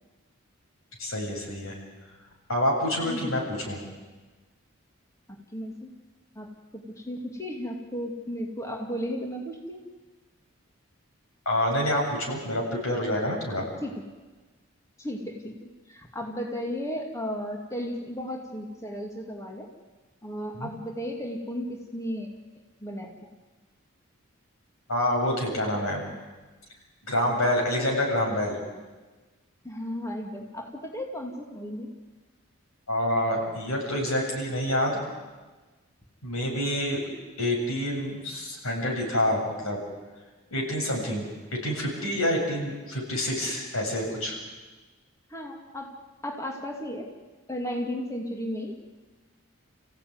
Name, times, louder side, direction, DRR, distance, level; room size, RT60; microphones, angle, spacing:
voice 1, 1.0-1.7 2.5-3.4 3.7-3.8 11.5-13.6 20.5-20.7 24.9-26.0 27.1-28.6 32.9-35.0 36.2-37.0 37.4-39.8 40.5-44.4, left 1 dB, 90° left, 0 dB, 7.9 m, -27 dB
voice 2, 3.0-3.3 5.5-5.9 6.4-9.8 13.8-14.1 15.0-19.7 20.2-22.3 22.8-23.1 29.6-31.9 45.3-46.0 46.2-47.1 47.5-48.7, equal, 15° left, 1 dB, 2.4 m, -34 dB
29.0 x 16.0 x 9.6 m, 1.3 s
head